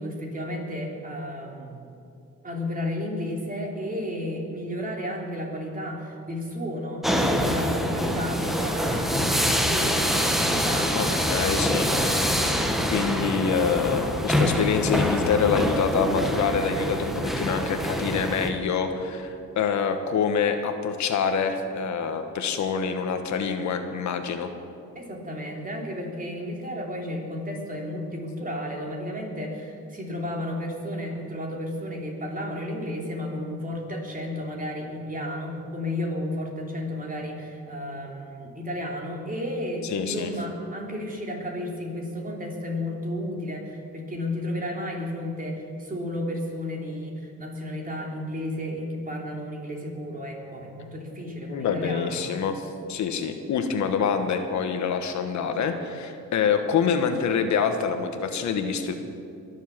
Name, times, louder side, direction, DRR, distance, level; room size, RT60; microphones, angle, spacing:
voice 1, 0.0-1.8 2.4-11.2 24.9-52.2, left 1 dB, 30° right, -1 dB, 3.3 m, -33 dB
sound 1, 7.0-18.5, equal, ahead, 1.4 m, -25 dB
voice 2, 10.9-11.9 12.5-19.3 19.5-24.5 39.8-40.3 51.5-58.9, left 6 dB, 70° left, 7 dB, 1.3 m, -26 dB
22.0 x 7.4 x 7.4 m, 2.5 s
cardioid pair, 90°, 30 cm